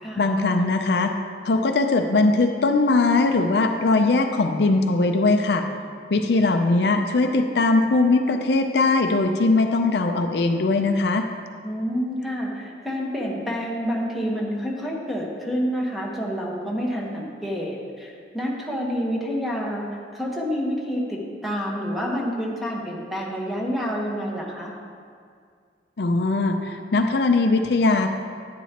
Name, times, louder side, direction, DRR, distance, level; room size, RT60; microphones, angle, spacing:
voice 1, 0.2-1.1 1.4-5.6 6.1-11.2 26.0-28.1, left 3 dB, 65° left, 5 dB, 0.5 m, -20 dB
voice 2, 11.6-19.9 20.1-24.7, equal, ahead, -3 dB, 1.1 m, -28 dB
10.0 x 9.5 x 2.9 m, 2.1 s
head